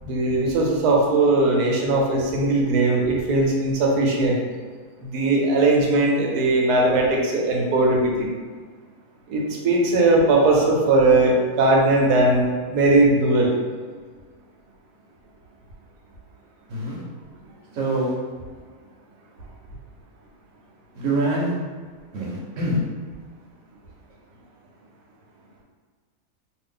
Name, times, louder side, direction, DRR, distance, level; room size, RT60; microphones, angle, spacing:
voice 1, 0.0-4.4 5.0-8.3 9.3-12.5 12.7-13.5, right 2 dB, 85° right, -1 dB, 1.2 m, -19 dB
voice 2, 17.7-18.1 20.9-21.5 22.1-22.8, right 1 dB, 60° right, -4 dB, 1.0 m, -24 dB
2.7 x 2.4 x 3.6 m, 1.5 s
omnidirectional pair, 1.6 m